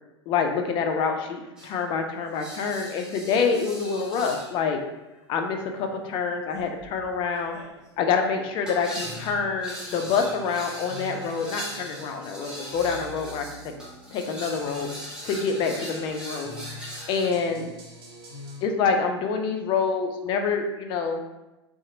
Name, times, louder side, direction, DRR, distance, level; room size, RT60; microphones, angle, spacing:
voice 1, 0.3-4.8 5.3-7.6 8.0-13.6 14.1-14.9 15.2-17.7 18.6-21.2, left 5 dB, 35° left, 5 dB, 0.3 m, -27 dB
metal bowl, 1.6-1.9 2.3-4.6 5.5-17.3, equal, 5° right, 0.7 m, -41 dB
sound 1, 9.0-18.6, left 1 dB, 50° right, 0.7 m, -44 dB
2.7 x 2.0 x 2.6 m, 1.0 s
figure-of-eight pair, 90°, 14 cm